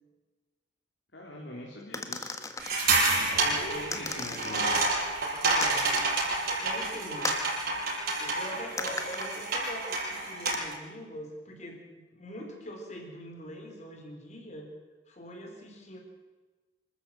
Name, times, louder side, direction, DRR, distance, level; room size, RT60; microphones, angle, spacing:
voice 1, 1.1-2.4 3.1-4.8, left 1 dB, 65° left, -2 dB, 3.6 m, -42 dB
sound 1, 1.9-2.8 3.9-4.7 5.6-6.1 7.2-7.5 8.8-9.3 10.5-10.6, left 3 dB, 15° left, 1.5 m, -36 dB
sound 2, 2.6-10.7, right 3 dB, 55° right, 6.6 m, -29 dB
voice 2, 3.3-4.3 5.5-5.9 6.6-7.4 8.2-14.7 15.1-16.0, equal, 40° left, 2 dB, 4.5 m, -43 dB
26.0 x 13.5 x 7.8 m, 1.3 s
head